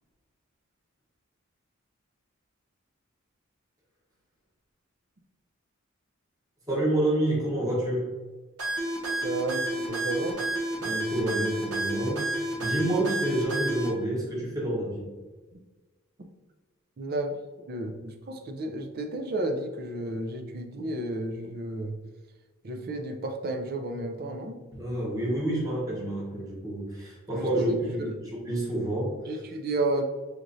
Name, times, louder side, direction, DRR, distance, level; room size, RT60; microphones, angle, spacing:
voice 1, 6.7-8.1 10.8-15.1 24.7-29.2, right 1 dB, 15° right, -5 dB, 1.0 m, -29 dB
sound 1, 8.6-13.9, right 1 dB, 80° right, 1.2 m, -30 dB
voice 2, 9.2-10.4 15.5-15.6 17.0-17.4 17.7-22.0 22.6-24.6 27.3-28.1 29.2-30.0, right 2 dB, 45° right, 4 dB, 0.4 m, -32 dB
4.9 x 3.1 x 2.6 m, 1.3 s
head